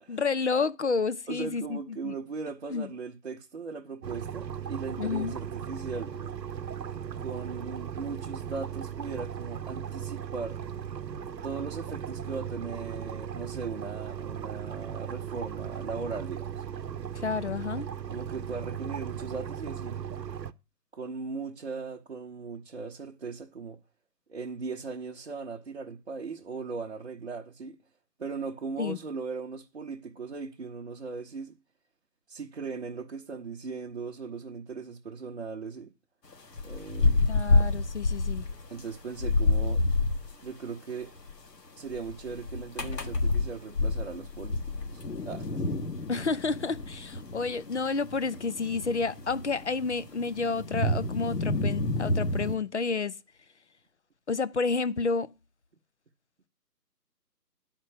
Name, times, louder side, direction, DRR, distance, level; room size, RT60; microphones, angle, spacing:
voice 1, 0.1-2.1 2.7-2.9 5.0-5.3 17.2-17.9 28.8-29.0 37.3-38.4 46.1-53.2 54.3-55.3, left 4 dB, 45° left, 0.5 m, -30 dB
voice 2, 1.3-6.2 7.2-10.6 11.4-16.6 18.1-20.0 20.9-23.8 24.3-27.8 28.2-31.5 32.3-35.9 36.6-37.2 38.7-39.9 40.4-41.1 41.8-45.6, right 4 dB, 40° right, 0.7 m, -38 dB
sound 1, 4.0-20.5, right 8 dB, 85° right, 0.8 m, -37 dB
sound 2, 36.3-40.3 41.2-41.3 41.9-52.6, left 2 dB, 75° left, 1.5 m, -28 dB
10.0 x 4.4 x 7.6 m
figure-of-eight pair, 150°, 49 cm